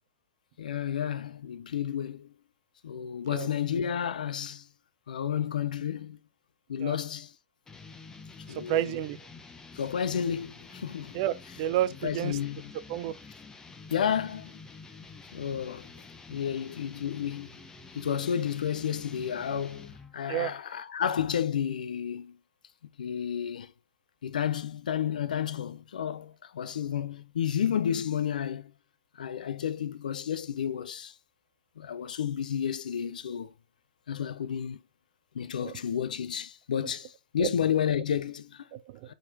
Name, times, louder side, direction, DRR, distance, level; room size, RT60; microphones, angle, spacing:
voice 1, 0.6-2.3 2.8-4.7 5.1-6.2 6.7-7.3 8.5-8.9 9.7-11.2 12.0-12.7 13.9-14.5 15.3-15.9 16.3-17.6 17.9-22.4 23.0-23.7 24.2-28.7 29.2-31.1 31.8-33.5 34.1-34.8 35.3-38.7 39.1-39.2, left 8 dB, 70° left, 0.5 m, -31 dB
sound 1, 7.7-20.2, left 4 dB, 10° left, 0.8 m, -49 dB
voice 2, 8.5-9.2 11.1-12.4 12.9-13.2 20.3-20.5 35.6-35.8 37.4-37.5 38.7-39.1, right 13 dB, 45° right, 0.4 m, -30 dB
4.3 x 3.9 x 2.6 m
figure-of-eight pair, 105°, 5 cm